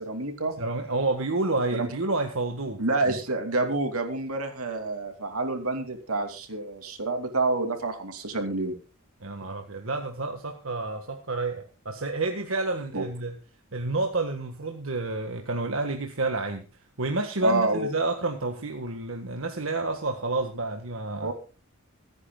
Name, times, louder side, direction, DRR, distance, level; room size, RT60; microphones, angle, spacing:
voice 1, 0.0-0.6 1.8-1.9 2.8-8.7 12.9-13.0 17.4-17.9 21.2-21.3, right 3 dB, 80° right, 5 dB, 2.8 m, -28 dB
voice 2, 0.6-3.2 9.2-13.4 13.7-16.6 17.0-21.3, right 2 dB, 65° right, 4 dB, 1.6 m, -29 dB
25.5 x 9.9 x 2.3 m, 0.32 s
head